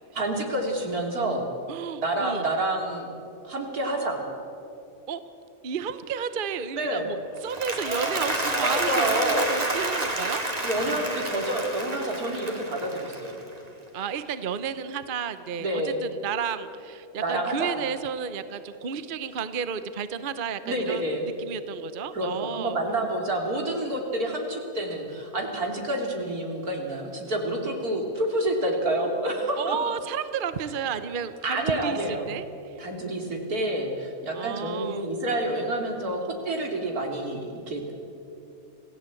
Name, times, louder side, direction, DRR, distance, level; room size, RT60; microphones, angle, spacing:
voice 1, 0.1-1.5 2.0-3.1 3.4-4.2 6.7-7.1 8.6-9.4 10.6-13.4 15.6-16.0 17.2-17.8 20.6-21.3 22.1-29.8 31.4-32.3 32.8-37.9, right 1 dB, 80° right, 2 dB, 3.5 m, -28 dB
voice 2, 1.7-2.4 5.1-5.2 5.6-10.4 13.9-22.8 29.6-32.8 34.3-35.2, right 7 dB, 45° right, 12 dB, 0.9 m, -32 dB
Applause, 7.3-13.7, right 2 dB, 25° right, 2.4 m, -29 dB
27.0 x 16.5 x 8.4 m, 2.8 s
omnidirectional pair, 1.6 m